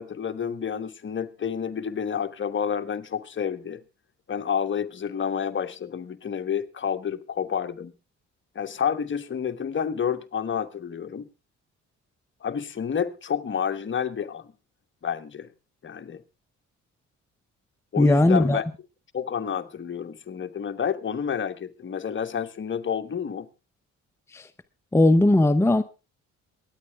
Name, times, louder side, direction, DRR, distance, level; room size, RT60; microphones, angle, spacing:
voice 1, 0.0-3.8 4.3-7.9 8.5-11.3 12.4-14.5 15.0-15.5 15.8-16.2 17.9-18.7 19.1-23.5, left 7 dB, 40° left, 1.3 m, -29 dB
voice 2, 18.0-18.6 24.3-24.5 24.9-25.8, left 1 dB, 10° left, 0.7 m, -18 dB
23.5 x 9.8 x 3.5 m
cardioid pair, 90°, 30 cm